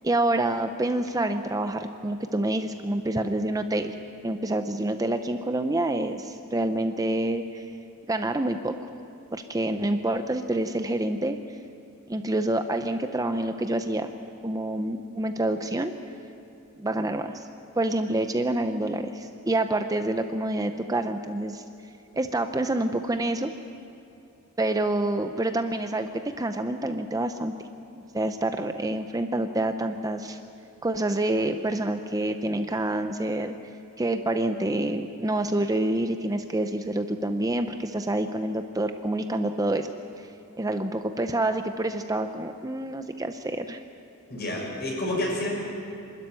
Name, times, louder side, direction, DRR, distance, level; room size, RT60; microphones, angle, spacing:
voice 1, 0.0-4.0 4.2-7.7 8.1-8.9 9.3-11.4 12.1-14.1 14.4-15.9 16.8-17.4 17.8-21.6 22.1-23.5 24.6-26.1 26.4-27.5 27.9-30.4 30.8-33.6 34.0-39.9 40.2-40.3 40.6-43.8, right 1 dB, 15° right, 7 dB, 0.6 m, -27 dB
voice 2, 44.3-45.5, left 1 dB, 50° left, -2 dB, 6.9 m, -29 dB
25.0 x 13.0 x 9.5 m, 2.7 s
head